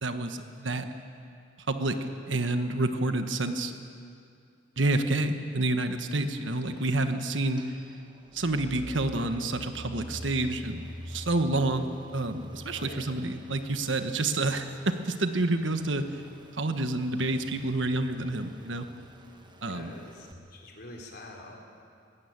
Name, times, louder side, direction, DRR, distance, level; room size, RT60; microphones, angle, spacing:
voice 1, 0.0-0.9 1.7-3.7 4.8-7.6 8.3-16.1 16.6-18.9 19.6-20.0, right 2 dB, 75° right, 7 dB, 1.4 m, -29 dB
sound 1, 6.3-20.3, equal, 25° right, 1.3 m, -47 dB
voice 2, 19.7-21.6, left 1 dB, 55° left, 0 dB, 3.8 m, -46 dB
20.5 x 16.0 x 9.0 m, 2.4 s
head